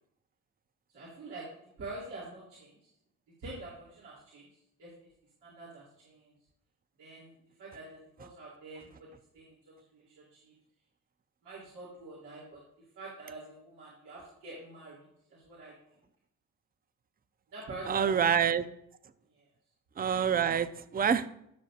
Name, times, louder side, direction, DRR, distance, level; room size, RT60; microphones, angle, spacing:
voice 1, 0.9-1.5 1.8-2.8 3.4-4.5 4.8-4.9 5.4-6.3 7.0-9.1 9.3-9.6 9.9-10.5 11.4-12.6 12.9-15.0 15.3-15.7 17.5-18.4 19.3-19.4, right 2 dB, 80° right, -7 dB, 3.3 m, -46 dB
voice 2, 17.9-18.6 20.0-20.7 20.9-21.3, right 7 dB, 25° right, 13 dB, 0.5 m, -26 dB
15.5 x 6.4 x 2.5 m, 0.76 s
supercardioid pair, 65°, 40 cm